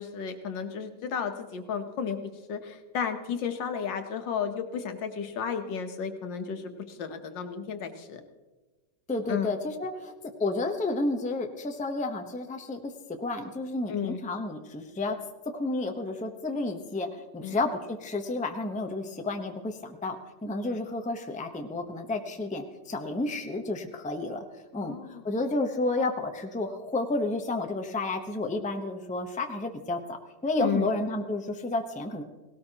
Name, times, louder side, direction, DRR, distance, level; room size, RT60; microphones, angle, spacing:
voice 1, 0.0-2.2 2.5-8.2 9.3-9.5 13.9-14.2 17.4-17.6 20.7-20.8 24.7-25.4 30.6-30.9, left 7 dB, 85° left, 7 dB, 1.8 m, -33 dB
voice 2, 9.1-10.1 10.4-12.9 13.2-15.2 15.5-17.1 17.3-20.2 20.4-24.4 24.7-30.2 30.4-32.2, left 2 dB, 5° left, 5 dB, 0.6 m, -31 dB
18.5 x 17.5 x 2.9 m, 1.2 s
omnidirectional pair, 1.9 m